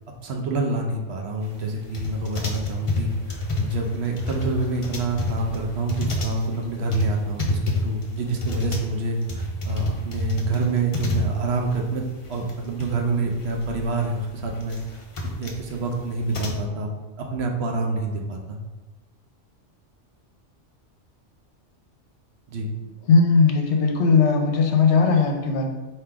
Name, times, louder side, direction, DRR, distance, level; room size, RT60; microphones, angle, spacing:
voice 1, 0.2-14.8 15.4-18.6 22.5-22.7, right 3 dB, 65° right, 1 dB, 0.9 m, -27 dB
sound 1, 1.9-11.7 12.0-12.1 12.3-12.9 13.2-16.6, left 1 dB, 40° left, 0.5 m, -28 dB
voice 2, 23.1-25.7, left 4 dB, 70° left, 4 dB, 0.9 m, -18 dB
3.7 x 2.9 x 4.5 m, 1.2 s
omnidirectional pair, 1.3 m